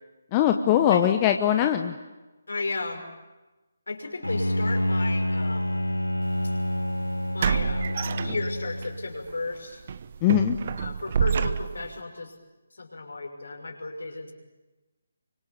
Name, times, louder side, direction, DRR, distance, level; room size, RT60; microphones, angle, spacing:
voice 1, 0.3-1.9 10.2-10.6, left 10 dB, 20° left, 6 dB, 1.0 m, -21 dB
voice 2, 2.5-3.0 3.9-5.8 6.4-6.5 7.3-9.8 10.8-12.3 12.7-14.3, left 3 dB, 65° left, 3 dB, 6.0 m, -34 dB
Bowed string instrument, 4.2-9.2, equal, 85° left, 1.1 m, -28 dB
sound 1, 6.3-6.4 7.4-8.9 9.2-9.4 9.9-12.0, right 7 dB, 40° right, 0.9 m, -28 dB
29.5 x 25.0 x 7.2 m, 1.1 s
figure-of-eight pair, 145°, 0 cm